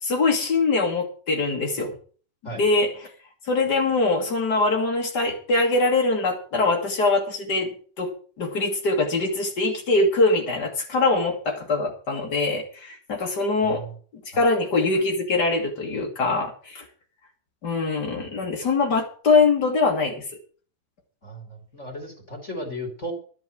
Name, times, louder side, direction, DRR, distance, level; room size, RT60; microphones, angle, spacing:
voice 1, 0.0-1.9 2.6-2.9 3.5-7.7 8.0-8.1 8.4-13.8 14.3-16.8 17.6-20.2, left 3 dB, 85° left, 1 dB, 0.9 m, -23 dB
voice 2, 13.6-13.9 14.3-14.5 21.2-23.1, equal, 20° left, 4 dB, 2.1 m, -35 dB
12.0 x 7.5 x 7.7 m, 0.42 s
omnidirectional pair, 5.4 m